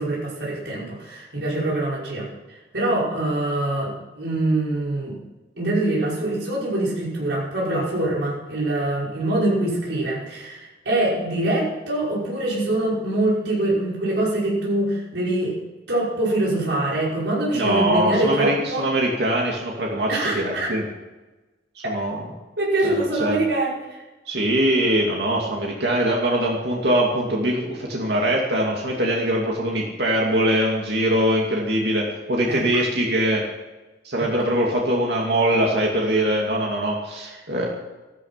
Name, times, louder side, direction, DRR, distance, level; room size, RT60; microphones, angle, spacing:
voice 1, 0.0-5.2 5.6-15.5 15.9-18.9 20.1-20.7 22.6-24.0 32.5-32.8 37.2-37.3, right 1 dB, 90° right, -6 dB, 5.8 m, -24 dB
voice 2, 17.5-20.8 21.8-22.2 22.8-23.4 24.3-33.4 34.0-37.7, right 1 dB, 70° right, -2 dB, 2.5 m, -22 dB
15.0 x 13.0 x 5.8 m, 1.1 s
head